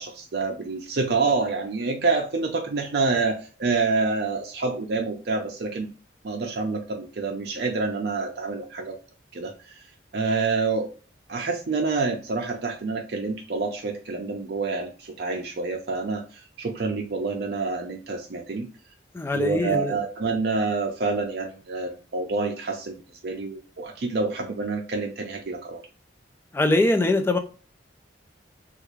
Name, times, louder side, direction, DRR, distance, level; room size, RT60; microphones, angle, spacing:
voice 1, 0.0-5.9 6.2-9.0 9.3-9.9 10.1-10.9 11.3-18.7 19.3-25.8, right 4 dB, 60° right, 2 dB, 0.5 m, -27 dB
voice 2, 19.1-19.9 26.5-27.4, left 2 dB, 10° left, 6 dB, 0.3 m, -22 dB
3.4 x 2.4 x 3.1 m, 0.38 s
head